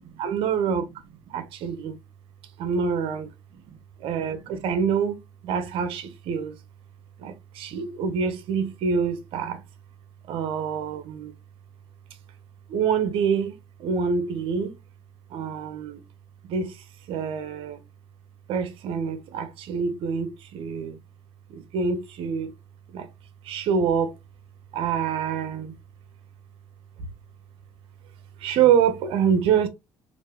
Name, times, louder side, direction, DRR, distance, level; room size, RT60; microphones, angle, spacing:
voice 1, 0.2-0.8 1.3-2.0 2.6-3.3 4.0-5.2 5.4-6.5 7.2-9.6 10.3-11.3 12.7-13.5 13.8-14.7 15.3-16.0 16.5-16.7 17.1-17.8 18.5-21.0 21.7-22.5 22.9-23.1 23.5-24.1 24.7-25.7 28.4-29.7, right 7 dB, 70° right, 0.7 m, -26 dB
3.1 x 2.6 x 3.2 m
supercardioid pair, 70°, 10 cm